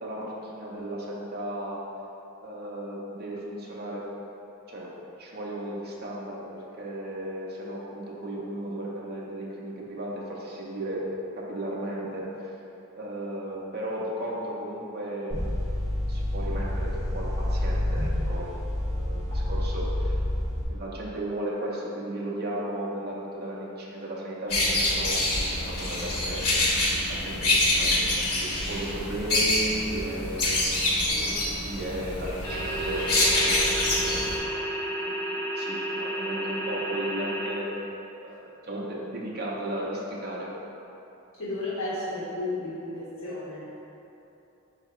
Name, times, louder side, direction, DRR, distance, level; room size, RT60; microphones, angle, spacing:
voice 1, 0.0-1.8 2.4-4.1 4.7-4.9 5.2-11.1 11.4-12.6 13.0-15.8 16.1-20.2 20.5-26.7 27.1-27.4 27.8-27.9 28.2-37.7 38.2-40.5, right 1 dB, 45° right, -5 dB, 0.6 m, -35 dB
sound 1, 15.3-20.6, left 1 dB, 25° right, 1.1 m, -28 dB
sound 2, 24.5-34.4, left 1 dB, 85° left, 1.0 m, -26 dB
sound 3, 32.4-37.5, right 1 dB, 15° left, 0.7 m, -31 dB
voice 2, 41.3-43.6, left 2 dB, 65° left, -10 dB, 1.3 m, -33 dB
4.0 x 2.8 x 4.3 m, 2.9 s
head